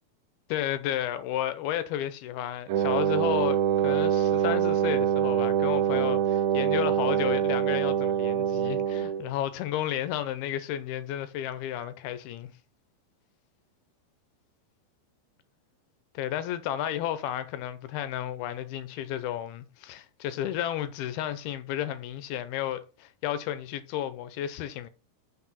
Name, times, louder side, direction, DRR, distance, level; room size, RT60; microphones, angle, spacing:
voice 1, 0.5-12.5 16.2-24.9, left 11 dB, 80° left, 2.5 m, -32 dB
Wind instrument woodwind instrument, 2.7-9.3, right 9 dB, 80° right, 2.2 m, -25 dB
6.1 x 4.7 x 5.5 m
omnidirectional pair, 4.5 m